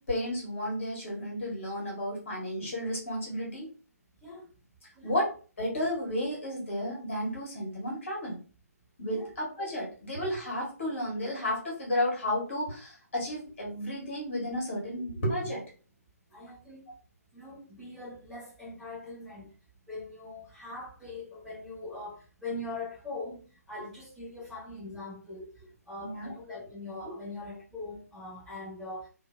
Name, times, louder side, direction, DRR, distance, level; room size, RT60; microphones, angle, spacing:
voice 1, 0.1-3.7 5.0-5.3 5.6-8.4 9.0-15.6 26.0-26.3 27.0-27.1, left 1 dB, 50° left, 1.4 m, -32 dB
voice 2, 16.3-16.8 17.3-19.5 19.9-23.4 23.7-25.5 25.9-29.1, left 2 dB, 5° right, 0.8 m, -41 dB
2.6 x 2.5 x 2.4 m
figure-of-eight pair, 140°, 9 cm